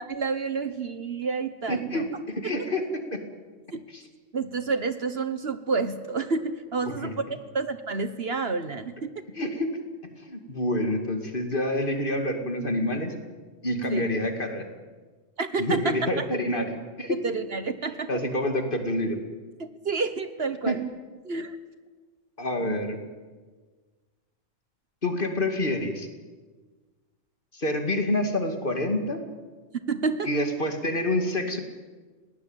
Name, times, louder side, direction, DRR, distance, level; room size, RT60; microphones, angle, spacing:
voice 1, 0.0-2.0 2.4-2.5 3.7-3.8 4.3-7.3 7.5-9.1 13.9-14.0 15.4-16.2 17.2-18.1 19.6-20.8 21.2-21.6 22.6-22.8 29.9-30.3, right 4 dB, 50° right, 11 dB, 1.3 m, -29 dB
voice 2, 1.7-2.8 3.1-3.2 3.9-4.0 6.8-7.1 9.3-9.8 10.2-13.1 13.6-14.7 15.6-17.2 18.1-19.2 20.7-20.8 22.4-23.0 25.0-26.1 27.5-29.2 30.3-31.6, left 1 dB, 40° left, 6 dB, 2.5 m, -27 dB
21.0 x 18.5 x 8.9 m, 1.4 s
omnidirectional pair, 1.4 m